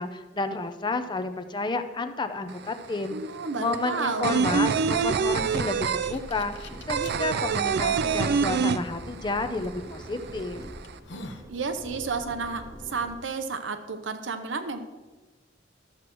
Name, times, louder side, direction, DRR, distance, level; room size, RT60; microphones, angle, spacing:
voice 1, 0.0-3.2 3.6-10.6, left 3 dB, 25° left, 8 dB, 0.5 m, -31 dB
sound 1, 2.5-2.6 2.8-9.4 9.7-9.8 10.1-10.9, right 6 dB, 60° right, 0.4 m, -25 dB
voice 2, 3.1-4.4 11.5-14.8, right 4 dB, 85° right, 8 dB, 0.8 m, -31 dB
sound 2, 4.4-13.1, equal, 20° right, 0.9 m, -44 dB
sound 3, 5.1-7.1 7.8-7.9 9.6-9.8 10.4-10.5 10.8-11.5, left 2 dB, 70° left, 0.8 m, -44 dB
13.0 x 7.5 x 3.1 m, 1.2 s
head